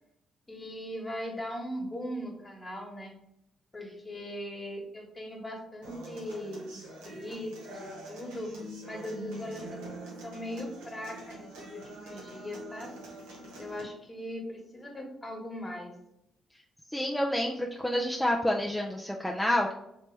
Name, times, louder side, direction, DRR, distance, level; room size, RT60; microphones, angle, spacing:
voice 1, 0.5-3.1 3.7-8.5 8.8-12.9 13.6-15.9, equal, 25° left, 1 dB, 1.3 m, -39 dB
Human voice / Acoustic guitar, 5.8-13.8, right 1 dB, 85° right, 0.8 m, -45 dB
voice 2, 16.9-19.7, left 1 dB, 5° left, -1 dB, 0.5 m, -28 dB
3.3 x 2.8 x 3.2 m, 0.81 s
hypercardioid pair, 50°, 0 cm